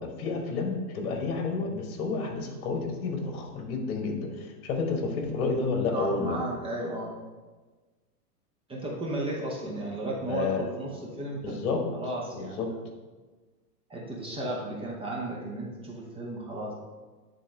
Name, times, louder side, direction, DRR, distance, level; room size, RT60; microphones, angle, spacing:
voice 1, 0.0-6.4 10.3-10.6 11.4-11.8 12.3-12.7, left 4 dB, 60° left, 3 dB, 1.3 m, -30 dB
voice 2, 5.9-7.1 8.7-11.6 11.9-12.6 13.9-16.7, right 1 dB, 10° right, -3 dB, 0.8 m, -34 dB
9.3 x 3.8 x 3.4 m, 1.3 s
hypercardioid pair, 130°, 48 cm